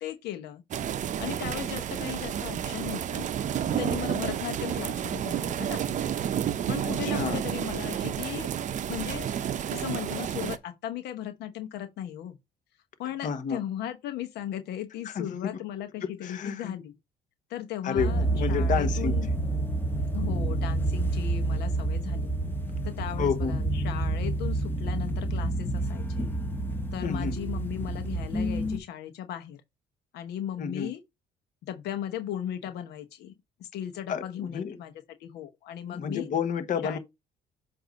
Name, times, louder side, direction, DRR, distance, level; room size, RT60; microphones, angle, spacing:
voice 1, 0.0-0.6 1.2-3.3 3.7-6.0 6.7-9.3 9.7-12.4 13.0-16.9 17.5-19.3 20.1-22.3 22.8-26.3 26.9-29.6 30.1-31.0 31.6-33.3 33.6-34.9 35.2-36.3 36.8-37.0, left 11 dB, 75° left, 0.9 m, -37 dB
sound 1, 0.7-10.6, right 9 dB, 45° right, 0.6 m, -30 dB
voice 2, 6.8-7.4 13.2-13.6 15.0-15.6 16.0-16.8 17.8-19.2 22.4-22.5 23.2-23.6 27.0-27.4 30.6-30.9 34.1-34.7 35.9-37.0, left 7 dB, 50° left, 1.0 m, -31 dB
sound 2, 18.0-28.8, right 2 dB, 10° left, 1.0 m, -28 dB
7.8 x 2.7 x 5.2 m
cardioid pair, 110°, 17 cm